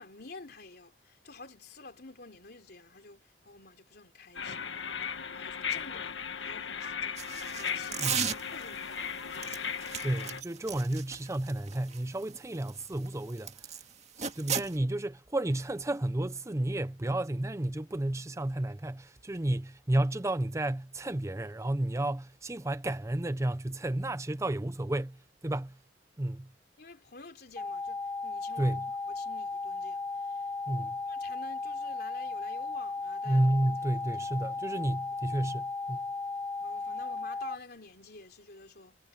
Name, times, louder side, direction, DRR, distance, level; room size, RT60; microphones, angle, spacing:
voice 1, 0.0-9.9 26.8-28.7 29.1-30.5 31.1-33.4 33.9-34.8 36.6-39.0, left 3 dB, 55° left, 3.6 m, -50 dB
sound 1, 4.3-10.4, left 7 dB, 80° left, 1.7 m, -37 dB
sound 2, 7.2-8.8 9.3-13.8 14.2-14.8, right 7 dB, 35° right, 2.0 m, -35 dB
voice 2, 10.0-13.8 14.2-25.8 26.2-26.5 28.6-28.8 30.7-31.0 33.3-36.0, right 1 dB, 15° right, 0.5 m, -31 dB
sound 3, 27.6-37.6, left 3 dB, 15° left, 0.8 m, -36 dB
head